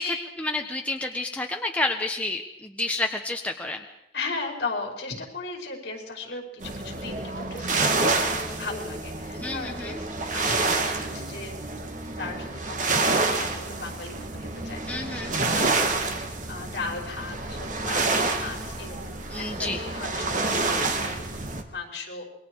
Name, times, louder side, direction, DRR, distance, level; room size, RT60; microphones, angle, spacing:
voice 1, 0.0-3.8 9.4-9.9 14.9-15.4 19.3-19.8, left 2 dB, 10° left, 2 dB, 1.3 m, -30 dB
voice 2, 4.1-10.1 10.3-11.5 11.9-18.1 18.4-22.2, left 3 dB, 65° left, 1 dB, 5.6 m, -37 dB
sound 1, 6.6-21.6, right 3 dB, 45° right, 2.0 m, -28 dB
28.0 x 22.5 x 4.8 m, 0.78 s
head